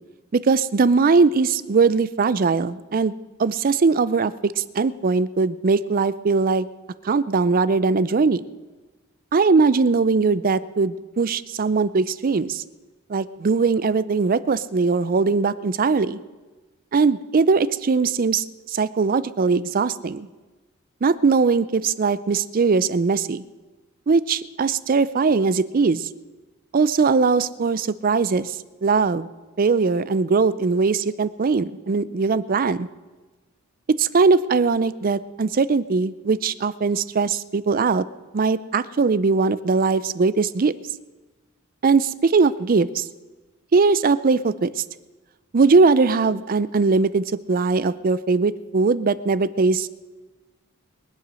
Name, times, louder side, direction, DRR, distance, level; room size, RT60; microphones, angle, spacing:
voice 1, 0.3-3.1 3.4-6.7 7.0-8.4 9.3-12.6 13.1-16.2 16.9-20.3 21.0-23.4 24.1-26.1 26.7-29.3 29.6-32.9 34.0-38.0 38.3-40.7 41.8-43.1 43.7-44.8 45.5-49.9, right 4 dB, 40° right, 17 dB, 0.5 m, -20 dB
22.0 x 8.2 x 6.2 m, 1.2 s
head